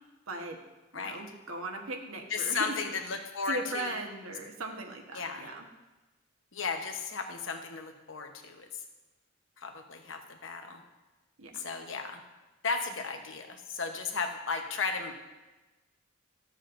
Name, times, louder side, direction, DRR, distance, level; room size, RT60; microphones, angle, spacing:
voice 1, 0.3-0.6 0.9-2.8 3.5-5.6 11.4-11.6, right 2 dB, 85° right, 2 dB, 1.2 m, -38 dB
voice 2, 2.3-4.0 5.1-5.5 6.5-8.7 9.6-10.8 11.5-12.2 12.6-15.2, left 5 dB, 65° left, 5 dB, 0.9 m, -35 dB
13.5 x 7.4 x 2.6 m, 1.1 s
head